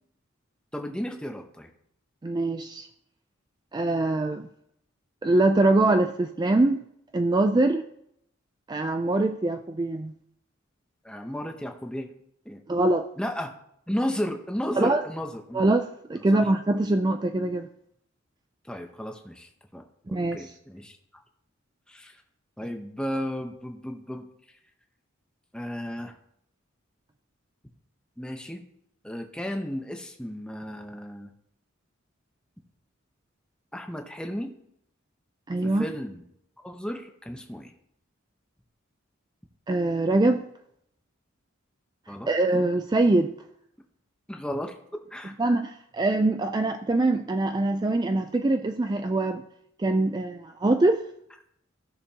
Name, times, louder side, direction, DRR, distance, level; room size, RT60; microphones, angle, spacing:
voice 1, 0.7-1.7 11.0-12.1 12.4-12.6 13.2-13.6 13.9-15.6 16.2-16.5 18.6-21.0 21.9-22.2 22.6-24.3 25.5-26.1 28.2-28.6 29.0-31.3 33.7-34.5 35.6-36.2 36.6-37.7 42.1-42.3 44.3-45.3, equal, 5° left, 4 dB, 0.8 m, -34 dB
voice 2, 2.2-2.9 3.7-4.5 5.2-6.8 7.1-7.8 8.7-10.1 12.7-13.1 14.8-15.0 15.5-17.7 20.1-20.5 35.5-35.8 39.7-40.4 42.3-43.3 45.4-49.4 49.8-51.0, right 2 dB, 20° right, 7 dB, 0.3 m, -23 dB
16.0 x 6.6 x 2.8 m, 0.74 s
head